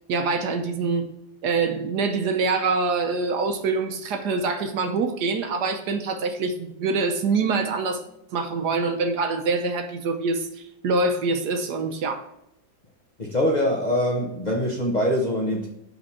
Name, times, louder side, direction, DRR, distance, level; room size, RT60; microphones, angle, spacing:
voice 1, 0.1-1.1 1.4-8.0 8.3-12.3, right 4 dB, 70° right, 7 dB, 1.2 m, -25 dB
voice 2, 13.2-15.7, equal, 30° left, -2 dB, 0.9 m, -23 dB
5.4 x 5.2 x 4.3 m, 0.83 s
omnidirectional pair, 2.0 m